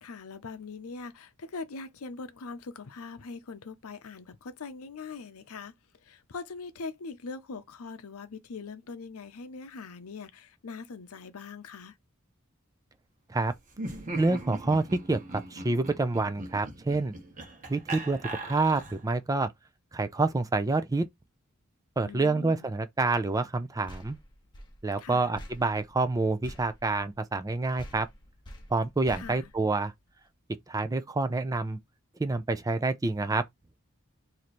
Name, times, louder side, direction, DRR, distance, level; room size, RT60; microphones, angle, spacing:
voice 1, 0.0-5.7 6.0-12.0 22.0-22.8 25.0-25.3 29.2-29.5, left 4 dB, 80° left, 0.6 m, -42 dB
Laughter, 13.7-19.1, right 2 dB, 35° right, 1.1 m, -40 dB
voice 2, 14.1-17.1 17.7-18.2 18.4-19.5 19.9-21.0 22.0-24.2 24.8-28.1 28.7-29.9 30.7-31.8 32.2-33.4, right 3 dB, 15° right, 0.4 m, -27 dB
sound 1, 23.9-27.5 27.8-30.3, equal, 20° left, 0.9 m, -48 dB
3.1 x 2.7 x 4.1 m
head